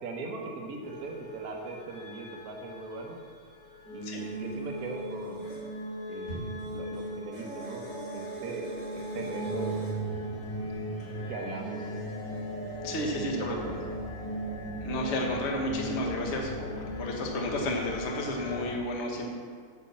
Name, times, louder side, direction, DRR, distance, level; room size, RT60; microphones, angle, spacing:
voice 1, 0.0-3.2 3.9-5.6 6.1-8.7 8.9-9.8 11.3-11.8 13.1-13.8, right 3 dB, 80° right, 1 dB, 0.8 m, -39 dB
sound 1, 0.8-18.7, right 1 dB, 60° left, 3.6 m, -38 dB
sound 2, 4.0-5.6 6.6-9.9, equal, 45° left, 3.4 m, -47 dB
sound 3, 6.2-6.9 8.7-8.8 9.2-9.3 10.0-13.6, right 2 dB, 20° left, 2.2 m, -46 dB
voice 2, 12.8-13.8 14.8-19.3, left 1 dB, 85° left, 0 dB, 0.6 m, -32 dB
8.6 x 6.2 x 7.0 m, 2.1 s
omnidirectional pair, 3.5 m